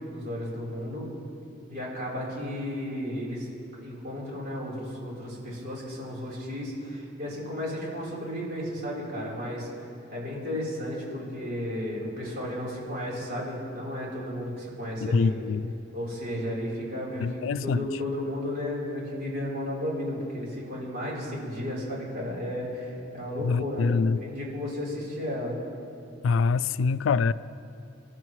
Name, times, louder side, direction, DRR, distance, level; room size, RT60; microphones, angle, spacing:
voice 1, 0.1-1.1 1.7-3.5 3.7-15.4 15.9-23.9 24.2-25.6, left 1 dB, 50° right, -5 dB, 3.9 m, -33 dB
voice 2, 15.0-15.7 17.2-17.9 23.4-24.2 26.2-27.3, left 5 dB, 85° left, 18 dB, 0.3 m, -25 dB
24.5 x 12.0 x 3.1 m, 2.6 s
head